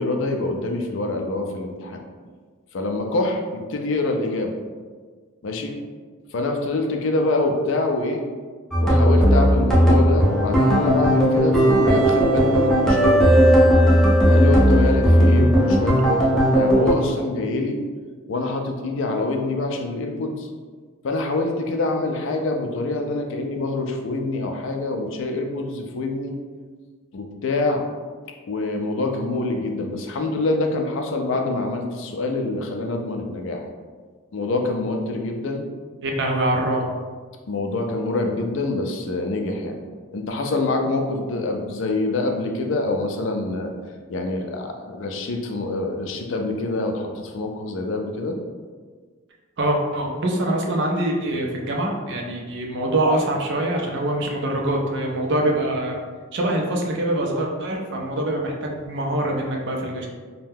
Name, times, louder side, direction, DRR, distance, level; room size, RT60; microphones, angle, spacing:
voice 1, 0.0-2.0 2.7-4.5 5.4-5.8 6.3-8.2 8.8-13.4 14.3-17.8 18.3-20.5 21.0-26.4 27.1-27.8 28.5-33.6 34.3-35.7 37.5-39.8 40.1-43.7 44.1-48.4, left 2 dB, 60° left, 3 dB, 0.4 m, -25 dB
sound 1, 8.7-16.9, equal, ahead, 0.5 m, -16 dB
voice 2, 36.0-36.9 49.6-56.0 56.3-60.1, right 1 dB, 55° right, 0 dB, 0.5 m, -24 dB
2.7 x 2.2 x 3.5 m, 1.5 s
head